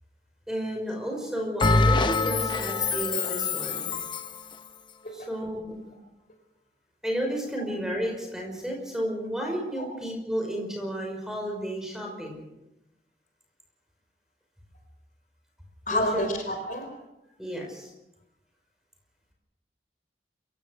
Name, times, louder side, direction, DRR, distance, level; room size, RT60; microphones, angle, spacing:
voice 1, 0.5-4.0 5.1-5.8 7.0-12.4 15.9-16.3 17.4-17.9, equal, 5° right, 1 dB, 5.5 m, -32 dB
Bell, 1.6-4.4, left 3 dB, 25° left, 0.9 m, -25 dB
voice 2, 15.9-16.9, left 1 dB, 45° left, 5 dB, 4.7 m, -28 dB
27.5 x 16.5 x 6.5 m, 0.92 s
head